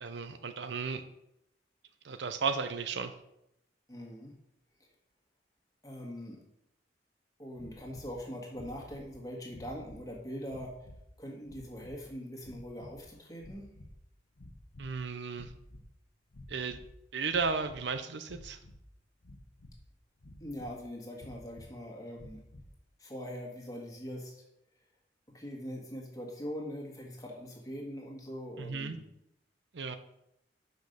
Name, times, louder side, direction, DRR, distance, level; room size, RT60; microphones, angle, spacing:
voice 1, 0.0-1.0 2.0-3.1 14.8-15.5 16.5-16.8 17.1-18.6 28.6-29.0 29.7-30.0, right 5 dB, 75° right, 9 dB, 0.6 m, -34 dB
voice 2, 3.9-4.4 5.8-6.4 7.4-10.8 11.2-13.7 20.4-22.4 23.0-24.4 25.3-29.0, equal, 20° left, -1 dB, 1.8 m, -42 dB
sound 1, 7.6-8.2 8.5-9.1 9.5-10.1 10.5-11.1 11.4-12.0 12.4-13.1 13.4-14.0 14.3-15.0 15.3-15.9 16.3-16.9 17.3-17.9 18.2-18.8 19.2-19.8 20.2-20.8 21.2-21.7 22.1-22.7, left 1 dB, 85° left, 1.0 m, -51 dB
6.3 x 5.3 x 6.5 m, 0.82 s
head